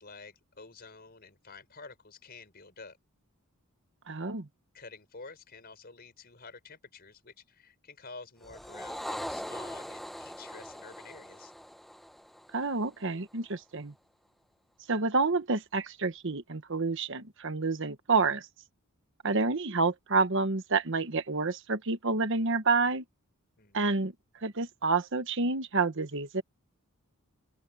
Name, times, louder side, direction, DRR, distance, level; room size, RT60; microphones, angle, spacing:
voice 1, 0.0-3.0 4.7-11.5 23.6-23.8, left 4 dB, 45° left, 5.3 m, -50 dB
voice 2, 4.1-4.5 12.5-13.9 14.9-18.5 19.2-23.0 23.7-26.4, right 3 dB, 55° right, 1.2 m, -29 dB
sound 1, 8.4-13.0, equal, ahead, 0.8 m, -41 dB
open air
head